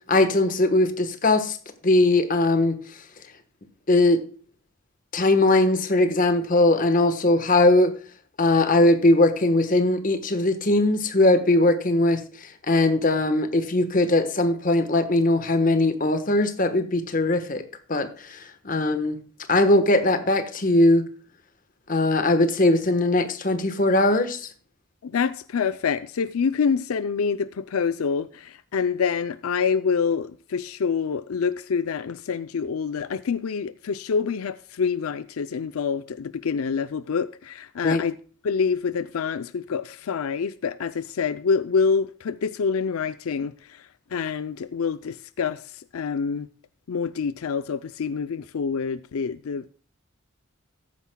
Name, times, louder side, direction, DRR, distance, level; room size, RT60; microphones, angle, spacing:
voice 1, 0.1-1.6 1.8-2.8 3.9-4.2 5.1-7.9 8.4-12.2 12.7-17.6 17.9-18.4 18.6-19.2 19.5-21.0 21.9-24.4 37.8-38.0, left 2 dB, 40° left, 1.2 m, -20 dB
voice 2, 25.0-38.2 38.4-46.5 46.9-49.7, left 5 dB, 85° left, 0.4 m, -26 dB
14.0 x 10.5 x 2.2 m
head